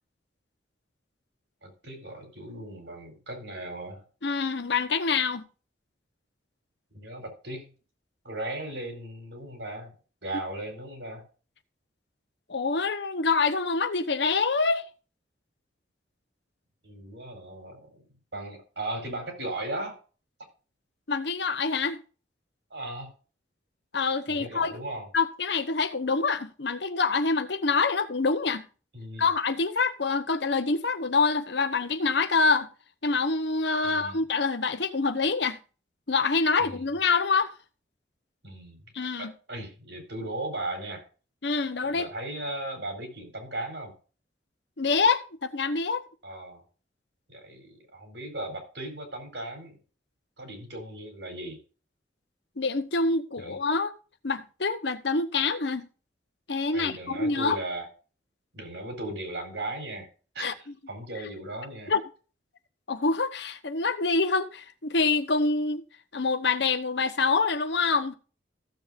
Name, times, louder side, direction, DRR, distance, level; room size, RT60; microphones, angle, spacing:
voice 1, 1.6-4.0 6.9-7.7 8.2-9.9 10.2-11.2 16.8-18.0 18.3-20.0 22.7-23.1 24.3-25.1 28.9-29.3 33.8-34.2 36.6-36.9 38.4-38.8 39.2-41.0 41.8-43.9 46.2-46.6 47.3-49.8 50.4-51.6 53.4-53.6 56.7-57.9 58.5-60.1 60.3-61.9, right 1 dB, 75° right, 4.2 m, -37 dB
voice 2, 4.2-5.4 12.5-14.8 21.1-22.0 23.9-24.7 25.1-28.6 29.2-32.7 33.0-35.6 36.1-37.5 38.9-39.3 41.4-42.1 44.8-46.0 52.6-53.9 54.2-55.9 56.5-57.6 60.4-60.5 61.9-62.0 62.9-65.8 66.1-68.1, left 4 dB, 70° left, 1.0 m, -26 dB
15.0 x 7.4 x 2.6 m
head